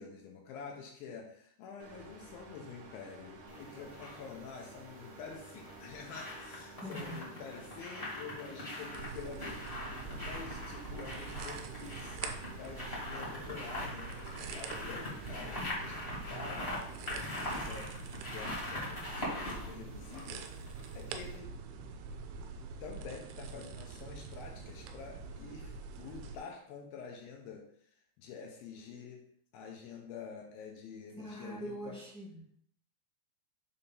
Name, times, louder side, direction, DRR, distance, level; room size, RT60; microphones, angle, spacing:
voice 1, 0.0-12.2 12.5-18.0 18.3-20.5 20.9-21.6 22.8-27.9 28.2-29.2 29.5-32.0, left 5 dB, 75° left, 1 dB, 2.4 m, -48 dB
sound 1, 1.8-17.8, right 2 dB, 65° right, 1.7 m, -52 dB
sound 2, 3.5-4.2 5.4-21.0 21.3-21.4, left 1 dB, 30° left, 1.2 m, -42 dB
voice 2, 6.8-7.2 31.2-32.6, equal, 5° left, -8 dB, 1.0 m, -43 dB
sound 3, 8.9-26.4, right 5 dB, 90° right, 2.7 m, -45 dB
6.8 x 2.8 x 5.3 m, 0.64 s
omnidirectional pair, 4.6 m